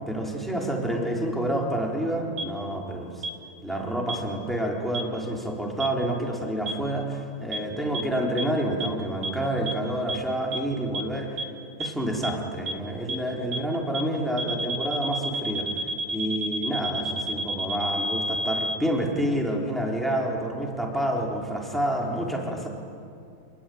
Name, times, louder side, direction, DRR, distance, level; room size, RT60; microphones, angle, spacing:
voice 1, 0.0-3.3 3.6-11.5 11.8-15.7 16.1-22.7, right 1 dB, ahead, -1 dB, 3.5 m, -28 dB
sound 1, 2.4-2.5 3.2-3.3 4.1-4.2 4.9-5.0 5.8-5.9 6.7-6.8 7.5-7.6 7.9-8.0 8.4-8.5 8.8-8.9 9.2-9.3 9.7-9.8 10.1-10.2 10.5-10.6 10.9-11.0 11.4-11.5 11.8-11.9 12.2-12.3 12.7-12.8 13.1-13.2 13.5-13.6 13.9-14.0 14.4-18.8, right 1 dB, 40° right, 2.5 m, -29 dB
27.0 x 21.5 x 9.5 m, 2.5 s
omnidirectional pair, 4.1 m